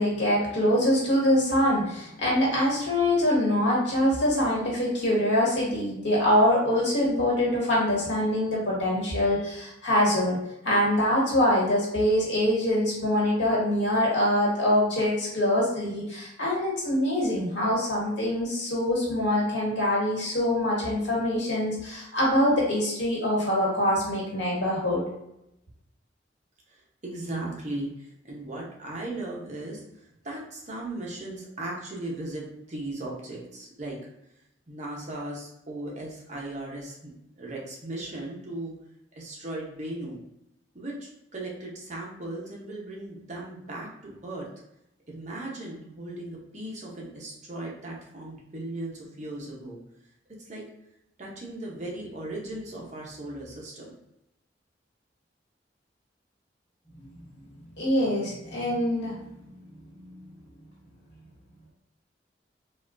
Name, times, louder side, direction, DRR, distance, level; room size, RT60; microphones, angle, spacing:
voice 1, 0.0-10.4 10.6-25.0 57.8-59.2 60.0-60.2, left 1 dB, 85° left, -5 dB, 1.5 m, -24 dB
voice 2, 27.0-34.0 34.7-38.7 39.2-40.2 40.7-44.5 45.1-49.8 50.5-50.6 51.2-54.0, right 2 dB, 40° right, -3 dB, 0.8 m, -37 dB
4.0 x 2.3 x 2.5 m, 0.82 s
head